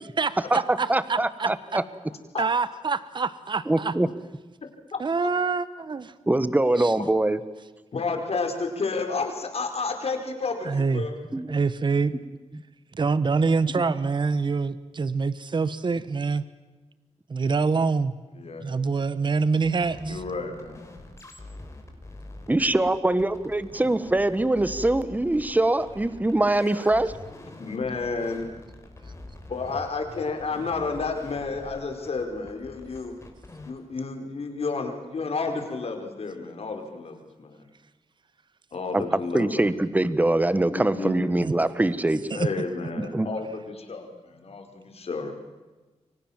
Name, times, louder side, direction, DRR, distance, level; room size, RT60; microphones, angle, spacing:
voice 1, 0.2-1.8 2.4-3.9 5.0-6.1 6.8-6.9 10.6-11.1 11.5-12.1 12.9-16.4 17.3-18.1 18.6-20.2 41.4-41.5 42.3-42.5, right 4 dB, 40° right, 15 dB, 1.1 m, -25 dB
voice 2, 0.9-1.8 3.7-4.1 6.3-7.4 11.3-11.5 20.0-20.2 22.5-27.1 38.9-42.3 43.1-43.3, right 2 dB, 15° right, 14 dB, 1.3 m, -23 dB
voice 3, 7.9-11.1 18.4-18.6 20.1-20.9 27.6-28.5 29.5-33.1 33.6-37.6 38.7-39.7 40.7-41.1 42.3-45.3, left 4 dB, 60° left, 4 dB, 5.0 m, -31 dB
sound 1, 19.6-33.8, left 2 dB, 25° left, 4.9 m, -45 dB
30.0 x 24.0 x 7.4 m, 1.2 s
wide cardioid pair, 110°, 12 cm